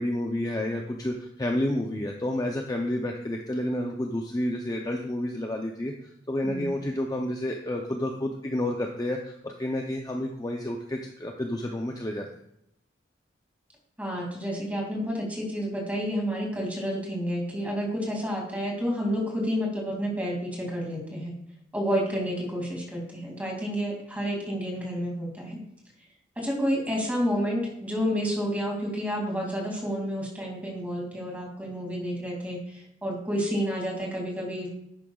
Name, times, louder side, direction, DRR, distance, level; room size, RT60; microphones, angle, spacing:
voice 1, 0.0-5.9 6.3-12.3, left 1 dB, 20° left, 2 dB, 0.6 m, -30 dB
voice 2, 14.0-21.3 21.7-25.6 26.4-34.7, equal, 10° right, -1 dB, 2.4 m, -30 dB
11.0 x 8.8 x 2.3 m, 0.78 s
head